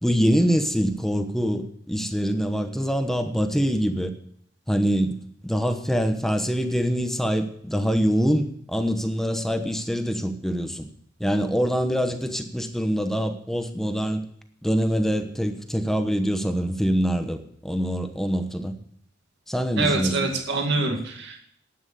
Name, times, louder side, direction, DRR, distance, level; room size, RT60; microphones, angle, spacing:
voice 1, 0.0-4.1 4.7-5.1 5.4-10.9 11.2-14.3 14.6-18.7 19.5-20.3 20.9-21.0, equal, ahead, 7 dB, 1.0 m, -24 dB
voice 2, 19.8-21.4, right 3 dB, 60° right, 2 dB, 2.2 m, -25 dB
11.5 x 9.0 x 6.8 m, 0.66 s
head